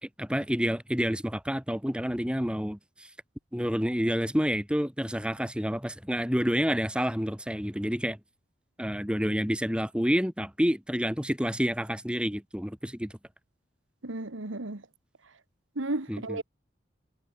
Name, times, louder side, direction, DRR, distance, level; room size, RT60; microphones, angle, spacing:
voice 1, 0.0-3.1 3.5-8.2 8.8-13.1 16.1-16.4, equal, 5° right, 3.2 m, -29 dB
voice 2, 14.0-14.8 15.8-16.4, right 2 dB, 90° right, 1.8 m, -33 dB
head